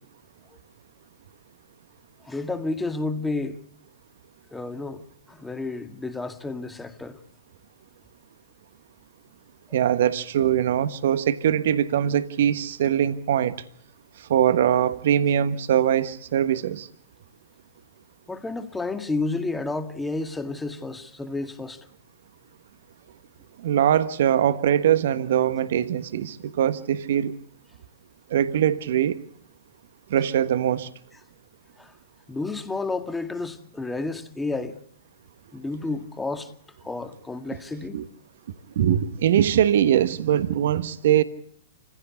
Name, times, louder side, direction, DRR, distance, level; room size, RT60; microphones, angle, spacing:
voice 1, 2.2-3.6 4.5-7.2 18.3-21.9 31.8-31.9 32.3-34.8 35.5-36.5 36.8-38.0, left 3 dB, 10° left, 2.0 m, -31 dB
voice 2, 9.7-13.5 14.3-16.9 23.6-27.3 28.3-29.2 30.1-30.9 37.9-38.1 38.8-41.2, right 10 dB, 60° right, 1.3 m, -22 dB
28.5 x 16.0 x 8.4 m
figure-of-eight pair, 110°, 0 cm